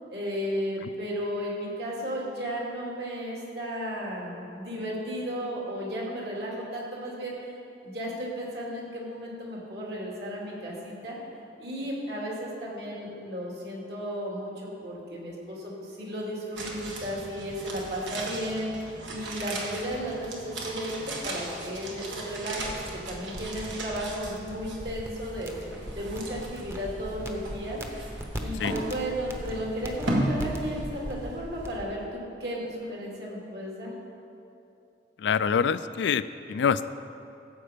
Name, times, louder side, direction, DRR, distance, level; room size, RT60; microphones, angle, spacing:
voice 1, 0.1-7.5 7.8-11.2 11.6-25.5 25.9-27.8 28.3-33.9, equal, 65° right, -3 dB, 2.6 m, -34 dB
sound 1, 16.5-31.7 32.0-32.1, right 1 dB, 90° right, 1.6 m, -37 dB
sound 2, 22.6-31.8, equal, 15° right, 0.8 m, -40 dB
voice 2, 35.2-36.2 36.5-36.9, left 6 dB, 75° left, 14 dB, 0.3 m, -25 dB
14.0 x 7.7 x 5.1 m, 2.7 s
head